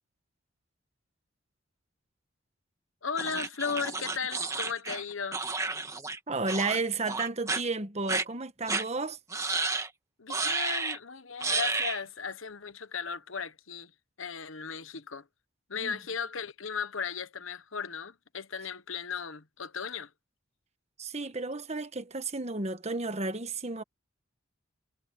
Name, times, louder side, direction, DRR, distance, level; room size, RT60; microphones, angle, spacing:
voice 1, 3.0-5.5 10.2-13.9 14.2-15.2 15.7-20.1, left 6 dB, 80° left, 1.3 m, -36 dB
sound 1, 3.2-6.2 6.5-6.8 7.1-7.6 8.1-8.2 8.7-8.8 9.3-9.9 10.3-11.0 11.4-12.0, right 3 dB, 15° right, 1.9 m, -31 dB
voice 2, 6.3-9.2 15.8-16.0 21.0-23.8, right 3 dB, 35° right, 1.3 m, -32 dB
head